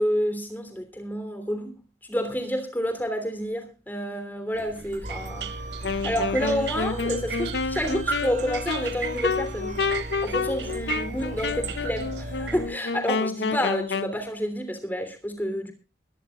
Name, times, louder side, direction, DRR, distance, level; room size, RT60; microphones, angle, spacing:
voice 1, 0.0-1.7 2.1-5.5 6.0-9.8 10.2-15.7, equal, 10° left, 8 dB, 3.1 m, -29 dB
sound 1, 4.5-12.7, right 6 dB, 70° right, 1.2 m, -36 dB
sound 2, 5.0-12.7, right 1 dB, 40° right, 2.8 m, -37 dB
Wind instrument woodwind instrument, 5.8-14.2, left 4 dB, 75° left, 0.7 m, -29 dB
23.0 x 13.0 x 2.4 m, 0.33 s
head